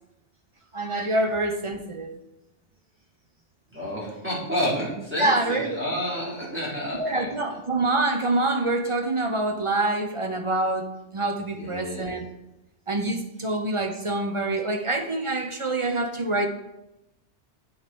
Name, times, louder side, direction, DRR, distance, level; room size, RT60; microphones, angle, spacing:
voice 1, 0.7-2.1 5.2-5.8 7.0-10.9 11.1-12.3 12.9-16.5, right 2 dB, 35° right, 5 dB, 0.6 m, -26 dB
voice 2, 3.7-7.3 11.5-12.1, equal, 10° right, -8 dB, 3.7 m, -30 dB
8.6 x 6.6 x 4.3 m, 0.92 s
omnidirectional pair, 1.2 m